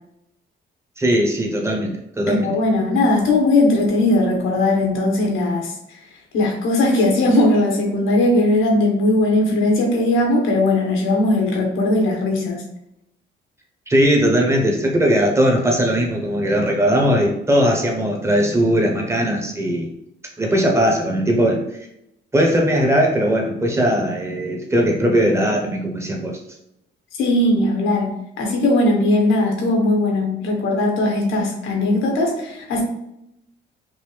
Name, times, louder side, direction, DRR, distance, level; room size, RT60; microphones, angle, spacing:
voice 1, 1.0-2.5 13.9-19.9 20.4-21.8 22.3-26.4, equal, 15° right, 0 dB, 1.2 m, -19 dB
voice 2, 2.3-6.0 6.3-12.6 27.2-28.1 28.4-32.8, left 2 dB, 85° left, 1 dB, 1.4 m, -18 dB
5.3 x 2.7 x 3.4 m, 0.82 s
cardioid pair, 90°, 20 cm